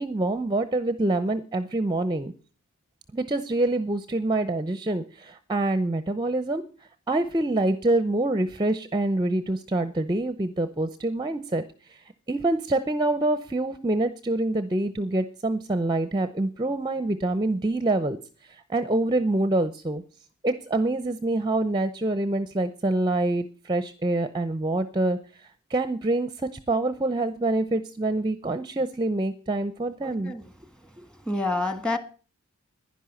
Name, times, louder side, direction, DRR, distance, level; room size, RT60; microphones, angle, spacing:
voice 1, 0.0-2.3 3.1-6.6 7.1-11.6 11.9-18.2 18.4-20.0 20.4-30.3, right 2 dB, 20° right, 0.7 m, -26 dB
voice 2, 30.0-30.4 31.2-32.0, left 2 dB, 5° left, 1.5 m, -28 dB
11.0 x 10.5 x 7.6 m
head